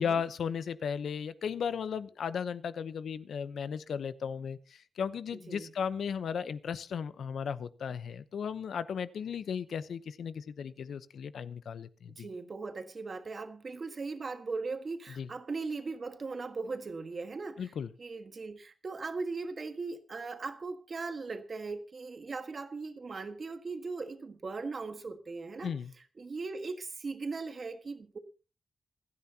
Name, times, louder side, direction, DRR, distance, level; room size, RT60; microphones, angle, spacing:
voice 1, 0.0-12.3 15.2-15.3 17.6-17.9 25.6-25.9, left 7 dB, 80° left, 0.8 m, -35 dB
voice 2, 12.1-17.7 18.0-25.7 26.2-28.2, right 4 dB, 40° right, 1.5 m, -39 dB
27.5 x 9.6 x 2.9 m
wide cardioid pair, 165°, 0 cm